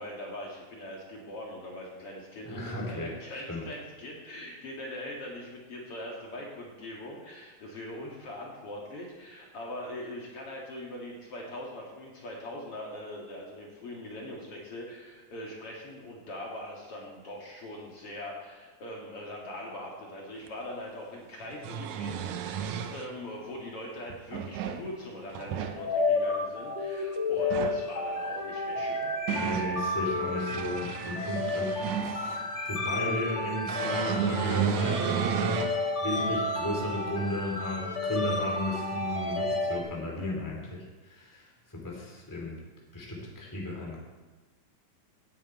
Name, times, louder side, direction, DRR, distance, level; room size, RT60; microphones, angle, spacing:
voice 1, 0.0-29.1, left 1 dB, 50° left, -2 dB, 2.8 m, -41 dB
voice 2, 2.4-3.6 29.3-32.4 32.7-35.3 36.0-42.6 42.9-44.0, left 1 dB, 5° left, -2 dB, 2.5 m, -34 dB
sound 1, 20.5-20.6 21.4-23.1 24.1-24.8 25.3-25.8 27.4-27.8 28.8-29.7 30.3-32.5 33.7-35.8 36.3-36.4 37.9-38.0, right 8 dB, 80° right, 2.1 m, -32 dB
sound 2, 25.4-39.8, left 2 dB, 80° left, 0.6 m, -31 dB
17.5 x 10.0 x 4.4 m, 1.3 s
omnidirectional pair, 3.4 m